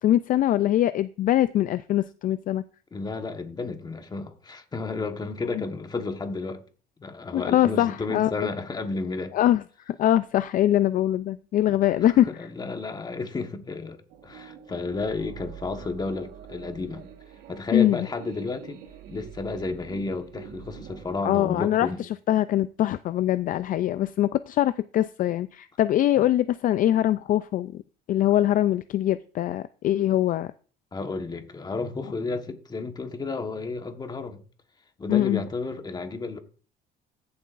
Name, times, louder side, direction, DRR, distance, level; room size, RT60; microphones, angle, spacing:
voice 1, 0.0-2.6 5.6-5.7 7.3-8.3 9.3-12.3 17.7-18.1 21.2-27.8 28.1-30.5 35.1-35.4, left 12 dB, 55° left, 0.4 m, -23 dB
voice 2, 2.9-6.6 7.0-9.3 11.7-11.8 12.3-17.0 17.5-18.8 19.1-22.0 30.9-34.4 35.0-36.4, left 3 dB, 25° left, 1.3 m, -32 dB
sound 1, 14.1-21.2, right 8 dB, 80° right, 1.5 m, -44 dB
15.0 x 7.1 x 2.5 m
cardioid pair, 110°, 17 cm